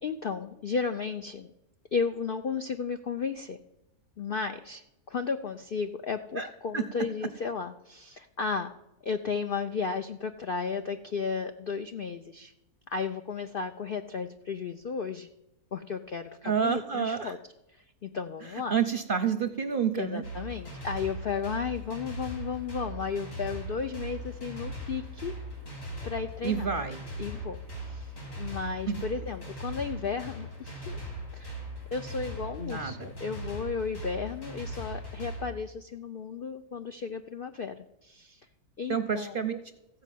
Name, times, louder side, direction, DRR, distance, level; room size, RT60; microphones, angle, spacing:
voice 1, 0.0-1.5 1.9-3.6 4.2-8.8 9.0-12.5 12.9-15.3 15.7-17.4 17.7-18.8 20.0-25.3 26.0-26.7 27.2-28.1 28.4-31.0 31.3-31.6 31.9-37.7 38.0-38.4 38.8-39.3, left 5 dB, 90° left, 8 dB, 0.4 m, -34 dB
voice 2, 16.4-17.3 18.5-20.2 26.4-27.0 28.9-29.0 32.6-33.1 38.9-39.6, right 6 dB, 50° right, 9 dB, 0.6 m, -29 dB
sound 1, 20.2-35.5, right 1 dB, 70° left, 3.9 m, -39 dB
15.0 x 5.2 x 9.1 m, 0.94 s
omnidirectional pair, 1.7 m